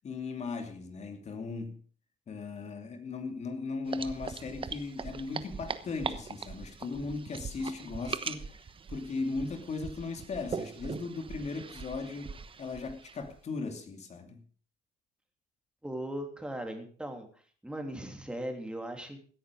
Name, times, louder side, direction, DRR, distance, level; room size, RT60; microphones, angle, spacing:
voice 1, 0.0-1.8 2.3-8.6 8.9-14.4, left 4 dB, 40° left, 2.7 m, -37 dB
sound 1, 3.9-13.4, right 5 dB, 30° right, 1.1 m, -41 dB
voice 2, 15.8-17.3 17.6-19.2, right 1 dB, 5° right, 3.2 m, -38 dB
17.0 x 10.0 x 5.2 m
cardioid pair, 110°, 17 cm